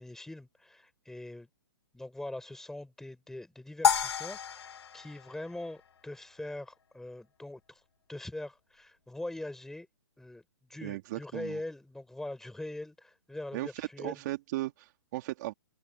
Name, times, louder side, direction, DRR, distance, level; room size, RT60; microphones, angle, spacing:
voice 1, 0.0-1.5 1.9-7.8 8.1-9.9 10.2-14.2, left 1 dB, 5° left, 6.7 m, -42 dB
sound 1, 3.8-6.2, left 8 dB, 70° left, 6.1 m, -31 dB
voice 2, 10.8-11.6 13.5-15.5, right 17 dB, 45° right, 3.3 m, -37 dB
open air
hypercardioid pair, 145°, 14 cm